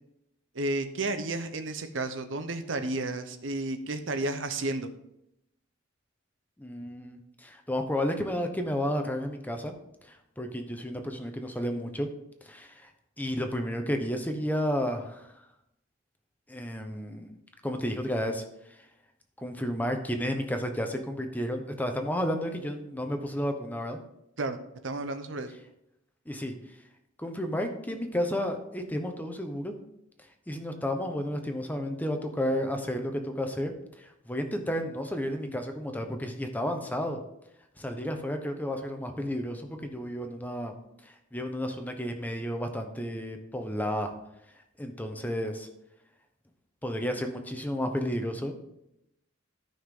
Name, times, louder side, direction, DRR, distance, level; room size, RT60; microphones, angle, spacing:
voice 1, 0.5-4.9 24.4-24.6 24.8-25.5, right 2 dB, 80° right, 8 dB, 0.9 m, -32 dB
voice 2, 6.6-9.7 10.1-12.1 12.4-12.9 13.2-15.3 16.5-17.3 17.6-18.4 19.4-24.0 26.3-26.5 27.2-29.7 30.5-33.7 34.0-37.2 37.8-40.7 41.0-44.1 44.8-45.7 46.8-48.5, equal, 10° left, 5 dB, 1.0 m, -32 dB
13.0 x 5.8 x 3.8 m, 0.81 s
head